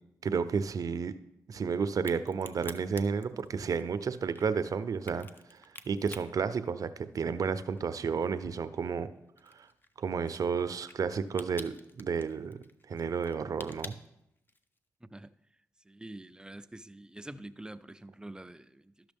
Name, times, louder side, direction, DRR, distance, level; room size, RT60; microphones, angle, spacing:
voice 1, 0.2-1.1 1.5-5.6 5.9-9.1 9.6-9.7 10.0-12.6 12.9-13.9, right 6 dB, 60° right, 0.6 m, -32 dB
Crack, 1.9-7.4 7.8-14.8, left 2 dB, 30° left, 0.7 m, -50 dB
voice 2, 15.9-19.1, right 1 dB, 10° right, 0.5 m, -46 dB
12.5 x 5.9 x 3.5 m
supercardioid pair, 50°, 7 cm